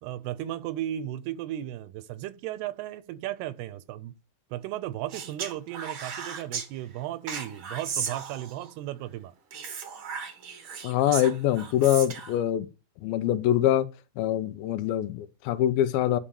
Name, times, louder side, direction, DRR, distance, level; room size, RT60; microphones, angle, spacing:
voice 1, 0.0-4.1 4.5-9.3, right 13 dB, 80° right, 2.7 m, -35 dB
Speech, 5.1-6.7 7.3-8.7 9.5-12.4, right 6 dB, 60° right, 1.3 m, -36 dB
voice 2, 10.8-12.7 13.0-13.9 14.2-16.2, left 12 dB, 75° left, 2.5 m, -24 dB
11.5 x 5.3 x 7.0 m
omnidirectional pair, 4.7 m